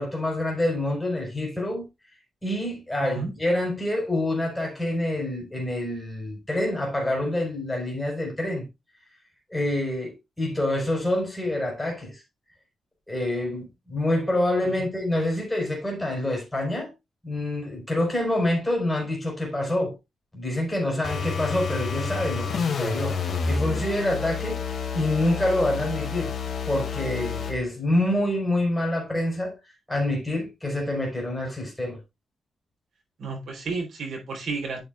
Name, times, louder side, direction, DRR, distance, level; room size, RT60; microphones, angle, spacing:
voice 1, 0.0-1.9 2.4-8.7 9.5-12.2 13.1-16.9 17.2-19.9 20.3-26.3 26.7-29.5 29.9-32.0, left 1 dB, 10° left, 4.9 m, -27 dB
sound 1, 21.0-27.6, left 5 dB, 55° left, 2.5 m, -29 dB
voice 2, 33.2-34.8, right 4 dB, 65° right, 4.2 m, -32 dB
11.0 x 7.0 x 2.6 m
wide cardioid pair, 135°, 0 cm